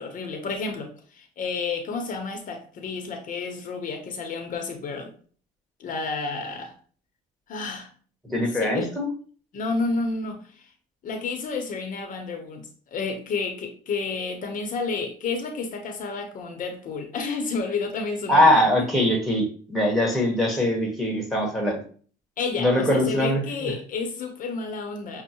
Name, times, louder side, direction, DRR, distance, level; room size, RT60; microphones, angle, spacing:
voice 1, 0.0-5.1 5.8-6.7 7.5-7.9 8.5-8.9 9.5-10.6 11.0-18.6 22.4-25.2, left 4 dB, 50° left, 0.7 m, -31 dB
voice 2, 8.3-9.1 18.3-21.8 22.6-23.7, left 1 dB, ahead, 1.2 m, -22 dB
6.2 x 2.1 x 2.8 m
cardioid pair, 110°, 17 cm